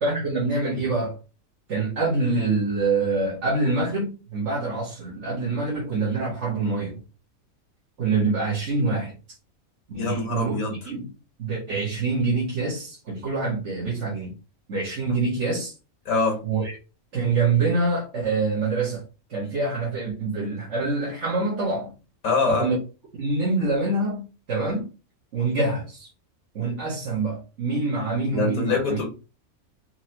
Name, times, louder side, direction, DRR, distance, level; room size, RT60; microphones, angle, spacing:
voice 1, 0.0-1.2 1.7-7.0 8.0-9.1 9.9-10.6 10.8-11.1 11.4-14.3 14.7-15.7 16.4-16.8 17.1-19.0 19.3-21.9 22.5-22.8 23.1-24.9 25.3-26.1 26.5-29.0, right 3 dB, 60° right, 1.5 m, -25 dB
voice 2, 9.9-10.8 16.1-16.4 22.2-22.7 28.3-29.1, left 4 dB, 75° left, 1.9 m, -24 dB
4.6 x 2.9 x 2.9 m
omnidirectional pair, 1.4 m